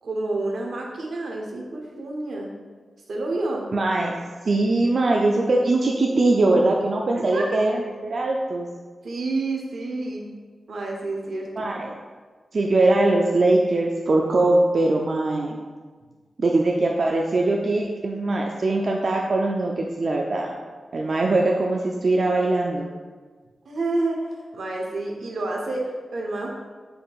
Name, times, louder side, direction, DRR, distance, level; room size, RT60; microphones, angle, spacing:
voice 1, 0.0-2.5 3.1-3.7 7.1-7.6 9.0-10.3 10.7-11.7 23.6-24.2 24.5-26.5, right 2 dB, 80° right, -1 dB, 0.8 m, -29 dB
voice 2, 3.7-4.1 4.4-8.7 11.6-11.9 12.5-15.6 16.4-20.5 20.9-22.9, right 2 dB, 55° right, 0 dB, 0.3 m, -21 dB
5.1 x 4.2 x 2.3 m, 1.4 s
wide cardioid pair, 105°, 0 cm